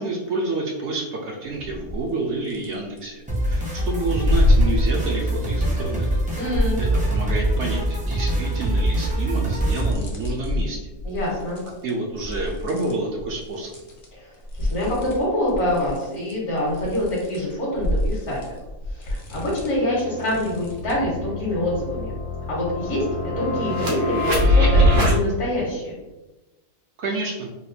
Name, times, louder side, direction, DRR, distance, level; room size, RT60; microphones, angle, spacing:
voice 1, 0.0-6.1 6.8-10.8 11.8-13.7 27.0-27.5, right 2 dB, 65° right, -1 dB, 0.7 m, -29 dB
sound 1, 1.5-2.1 2.4-3.4 4.0-7.3 7.7-14.1 14.3-21.1, left 1 dB, 50° left, 0.7 m, -27 dB
sound 2, 3.3-9.9, right 1 dB, 10° right, 0.5 m, -24 dB
voice 2, 6.3-6.8 11.0-11.6 14.2-14.3 14.6-18.4 19.0-22.1 22.5-25.9, left 1 dB, 65° left, -6 dB, 1.4 m, -25 dB
sound 3, 19.7-19.8 20.2-25.2, left 1 dB, 85° right, 1.3 m, -22 dB
4.1 x 2.3 x 2.7 m, 1.1 s
omnidirectional pair, 1.5 m